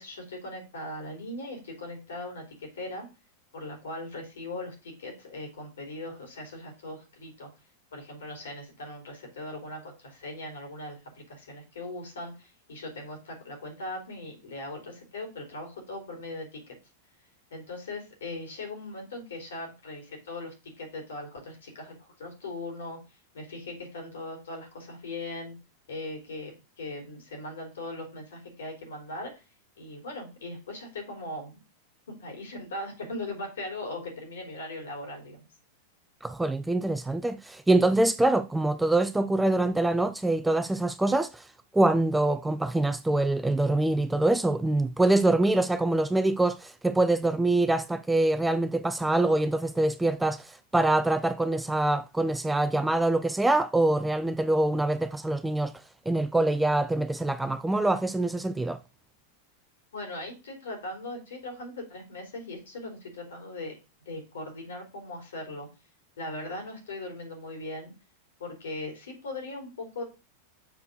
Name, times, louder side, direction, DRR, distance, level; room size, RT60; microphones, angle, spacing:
voice 1, 0.0-3.1 3.5-7.5 7.9-16.8 17.5-23.0 23.3-25.5 25.9-29.4 29.8-31.6 32.1-35.4 59.9-63.7 64.1-65.7 66.2-67.9 68.4-70.0, left 2 dB, 65° left, 3.5 m, -39 dB
voice 2, 36.2-41.4 41.7-55.7 56.1-58.8, right 2 dB, 5° right, 0.5 m, -25 dB
6.9 x 4.5 x 6.6 m
figure-of-eight pair, 90°, 0 cm